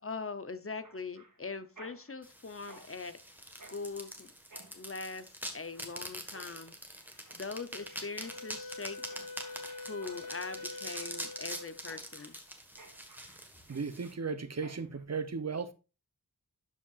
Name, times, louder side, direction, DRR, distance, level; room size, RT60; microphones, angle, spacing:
voice 1, 0.0-3.2 3.7-4.3 4.7-6.7 7.3-9.0 9.9-12.4, left 4 dB, 40° left, 0.7 m, -41 dB
Mechanisms, 0.8-15.0, right 2 dB, 65° right, 1.9 m, -58 dB
sound 1, 2.2-14.1, equal, 5° right, 1.5 m, -44 dB
Wind instrument woodwind instrument, 7.7-11.8, left 3 dB, 85° left, 1.4 m, -45 dB
voice 2, 13.7-15.7, right 5 dB, 50° right, 0.7 m, -36 dB
11.5 x 5.5 x 2.4 m
wide cardioid pair, 70°, 35 cm